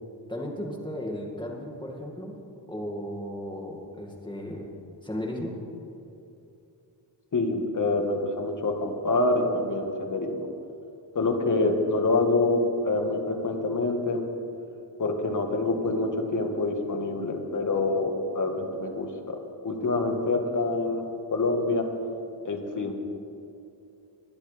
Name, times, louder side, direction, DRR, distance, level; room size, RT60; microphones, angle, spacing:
voice 1, 0.3-2.4 2.7-4.7 5.0-5.6, left 1 dB, 10° left, -1 dB, 2.1 m, -35 dB
voice 2, 7.3-10.5 11.1-14.2 15.0-21.0 21.3-21.9 22.4-22.9, left 2 dB, 45° left, 3 dB, 1.6 m, -26 dB
21.5 x 10.5 x 3.4 m, 2.8 s
wide cardioid pair, 100°, 44 cm